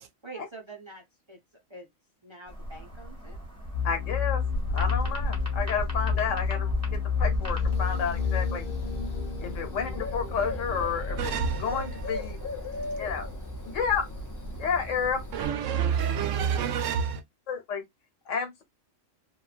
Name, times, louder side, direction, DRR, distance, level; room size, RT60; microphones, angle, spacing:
voice 1, 0.2-1.4 1.7-1.9 2.2-3.4, right 3 dB, 35° right, 0.5 m, -45 dB
sound 1, 2.5-8.2, right 1 dB, 15° right, 1.0 m, -35 dB
sound 2, 3.7-11.6, left 6 dB, 50° left, 0.9 m, -30 dB
voice 2, 3.8-4.4 4.7-8.7 9.4-11.3 11.6-12.4 13.0-13.3 13.6-14.1 14.6-15.2 17.5-17.8 18.3-18.6, left 6 dB, 75° left, 1.1 m, -31 dB
Bird, 7.7-15.5, left 1 dB, 30° left, 0.3 m, -37 dB
voice 3, 11.2-12.1 12.6-13.0 15.3-17.2, right 7 dB, 80° right, 0.9 m, -29 dB
3.0 x 2.2 x 2.4 m
omnidirectional pair, 1.3 m